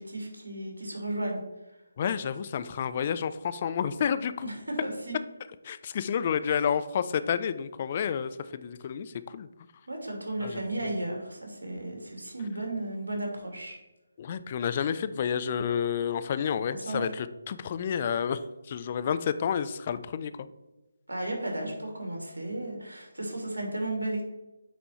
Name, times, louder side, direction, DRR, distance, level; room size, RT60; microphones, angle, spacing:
voice 1, 0.0-1.4 4.4-5.2 9.9-13.8 16.8-17.0 21.1-24.2, right 1 dB, 80° right, 1 dB, 2.6 m, -34 dB
voice 2, 2.0-4.5 5.6-9.5 10.4-10.6 14.2-20.5, left 7 dB, 35° left, 13 dB, 0.4 m, -30 dB
8.9 x 4.3 x 4.3 m, 1.0 s
figure-of-eight pair, 150°, 0 cm